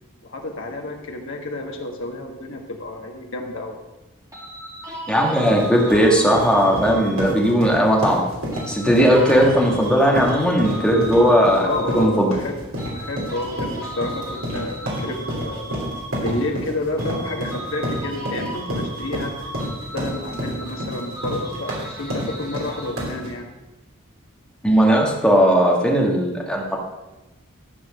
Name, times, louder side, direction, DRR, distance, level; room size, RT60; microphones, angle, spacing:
voice 1, 0.2-3.8 11.6-12.6 12.9-15.7 16.1-19.5 19.9-23.5, left 2 dB, 65° left, 1 dB, 1.5 m, -30 dB
sound 1, 4.3-7.7 8.5-12.3 12.8-16.7 17.0-23.3, right 1 dB, 15° right, 2.1 m, -36 dB
voice 2, 5.1-8.2 8.7-11.7 11.9-12.3 24.6-26.8, equal, 5° left, -2 dB, 1.4 m, -17 dB
sound 2, 5.2-23.3, equal, 75° right, 3.2 m, -29 dB
12.0 x 4.7 x 6.5 m, 1.1 s
head